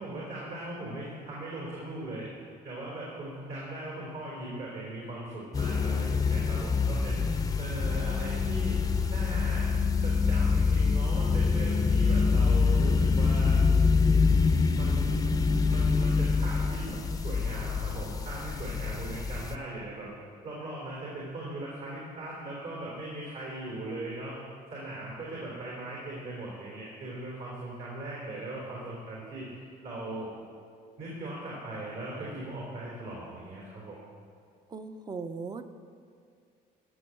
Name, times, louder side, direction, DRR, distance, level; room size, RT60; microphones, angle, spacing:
voice 1, 0.0-2.3 2.6-9.7 10.0-13.6 14.3-15.3 15.7-17.0 17.2-20.1 20.4-24.4 24.7-29.5 29.8-30.3 31.0-34.0, right 1 dB, 60° right, -5 dB, 3.7 m, -39 dB
sound 1, 5.5-19.5, left 4 dB, 20° left, 0.6 m, -25 dB
voice 2, 34.7-35.7, right 4 dB, 25° right, 10 dB, 0.7 m, -39 dB
15.0 x 6.3 x 7.0 m, 2.3 s
cardioid pair, 110°, 17 cm